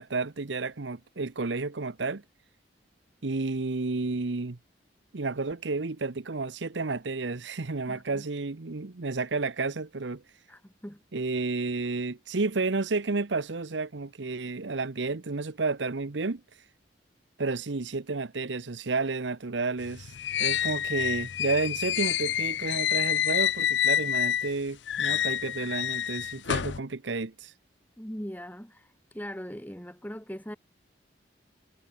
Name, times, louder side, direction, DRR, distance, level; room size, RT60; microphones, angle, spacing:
voice 1, 0.0-2.2 3.2-4.6 5.1-10.2 11.1-16.4 17.4-20.1 20.4-27.5, right 3 dB, 80° right, 0.9 m, -31 dB
voice 2, 7.9-8.2 10.5-11.0 28.0-28.9 29.1-30.6, equal, 10° left, 2.6 m, -40 dB
sound 1, 19.8-24.5 24.9-26.8, left 10 dB, 75° left, 0.5 m, -28 dB
head